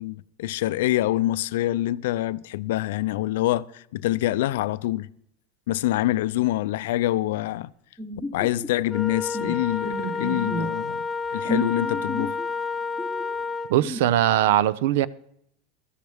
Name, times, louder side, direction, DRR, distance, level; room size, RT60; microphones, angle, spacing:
voice 1, 0.0-5.1 5.7-7.7 8.3-11.0 11.3-12.4, left 15 dB, 80° left, 0.5 m, -25 dB
sound 1, 8.0-8.7 9.0-9.1 9.3-9.5 9.8-10.7 11.4-12.5 13.0-13.4 13.8-14.0, right 1 dB, ahead, 1.3 m, -32 dB
Wind instrument woodwind instrument, 8.9-13.8, left 5 dB, 20° left, 0.9 m, -30 dB
voice 2, 13.7-15.1, right 13 dB, 75° right, 0.6 m, -20 dB
16.5 x 13.0 x 3.5 m
supercardioid pair, 120°, 0 cm